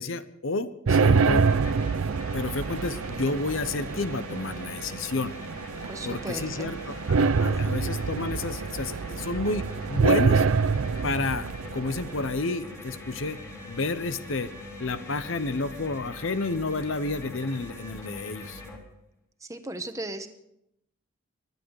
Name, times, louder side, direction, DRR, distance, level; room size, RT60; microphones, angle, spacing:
voice 1, 0.0-1.4 2.3-5.4 6.1-10.5 11.0-11.5 11.7-13.4 13.7-14.5 14.8-18.6, left 3 dB, 70° left, 13 dB, 0.9 m, -30 dB
sound 1, 0.9-18.8, left 1 dB, 15° left, 2.7 m, -42 dB
sound 2, 0.9-12.3, right 5 dB, 85° right, 0.5 m, -26 dB
voice 2, 5.9-6.7 19.4-20.3, right 1 dB, 15° right, 8 dB, 1.1 m, -36 dB
23.5 x 10.5 x 4.8 m, 0.80 s
head